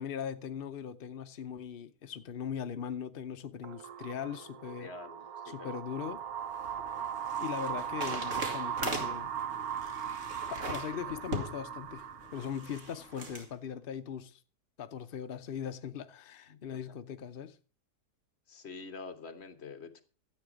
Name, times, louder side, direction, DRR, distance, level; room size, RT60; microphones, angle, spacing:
voice 1, 0.0-4.9 5.4-6.2 7.4-9.3 10.0-10.2 10.5-14.4 14.8-17.6, left 8 dB, 60° left, 0.6 m, -40 dB
sound 1, 3.6-13.1, right 9 dB, 65° right, 1.3 m, -39 dB
voice 2, 4.8-5.8 16.5-16.8 18.5-20.0, left 4 dB, 40° left, 1.3 m, -46 dB
sound 2, 6.1-13.5, right 1 dB, 45° right, 2.6 m, -41 dB
13.5 x 8.6 x 5.0 m
omnidirectional pair, 1.8 m